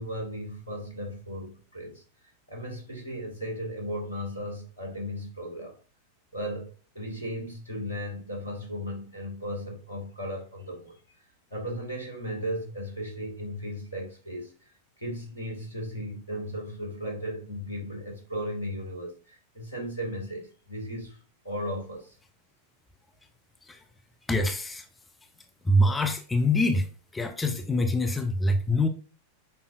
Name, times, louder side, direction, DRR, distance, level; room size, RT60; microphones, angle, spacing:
voice 1, 0.0-2.0 2.5-5.8 6.3-11.0 11.5-22.2, equal, 80° left, 2.5 m, -36 dB
voice 2, 24.3-24.8 25.6-26.9 27.1-28.9, left 1 dB, 10° left, 0.8 m, -24 dB
6.8 x 5.3 x 2.6 m
figure-of-eight pair, 90°, 0 cm